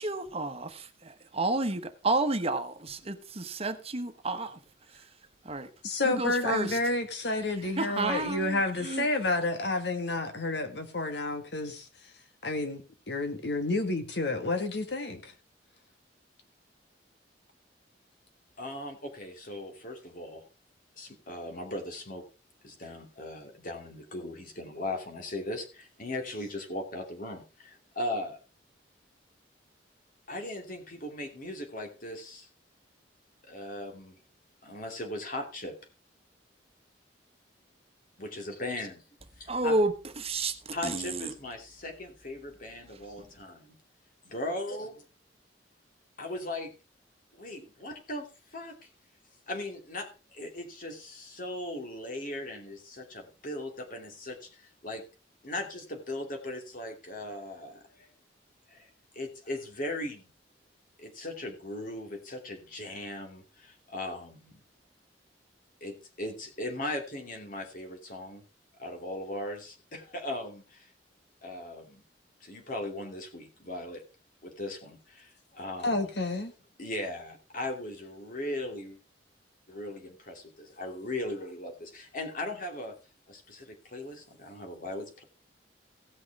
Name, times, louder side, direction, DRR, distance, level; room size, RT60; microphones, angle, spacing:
voice 1, 0.0-4.6 5.4-5.7 6.0-6.8 7.8-9.1 39.5-41.3, right 2 dB, 35° right, 1.2 m, -31 dB
voice 2, 5.8-11.9 12.4-12.8 13.1-15.3 75.8-76.5, left 2 dB, 70° left, 1.8 m, -30 dB
voice 3, 18.6-20.4 21.0-22.2 22.6-28.4 30.3-32.5 33.4-34.2 34.6-35.7 38.2-39.0 39.4-39.8 40.7-43.8 44.2-44.9 46.2-46.7 47.3-48.9 49.5-55.0 55.4-58.1 58.7-58.9 59.1-60.3 61.0-64.6 65.8-68.4 68.8-70.9 71.4-72.0 72.4-74.0 74.4-76.1 76.8-79.0 79.7-82.9 83.3-85.2, left 1 dB, 50° left, 2.8 m, -38 dB
16.5 x 6.3 x 4.8 m
head